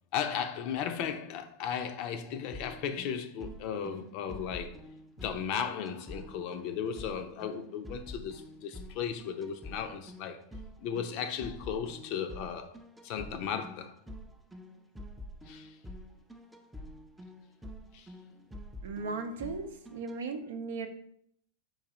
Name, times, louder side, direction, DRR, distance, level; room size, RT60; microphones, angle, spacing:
voice 1, 0.1-4.8 5.2-10.4 10.8-12.7 13.0-13.9 15.5-15.7 17.9-18.1, left 7 dB, 50° left, 0.5 m, -35 dB
sound 1, 2.5-20.2, left 1 dB, 5° right, 0.5 m, -47 dB
voice 2, 18.8-20.9, right 4 dB, 70° right, 0.6 m, -37 dB
3.9 x 2.7 x 4.2 m
hypercardioid pair, 95°, 0 cm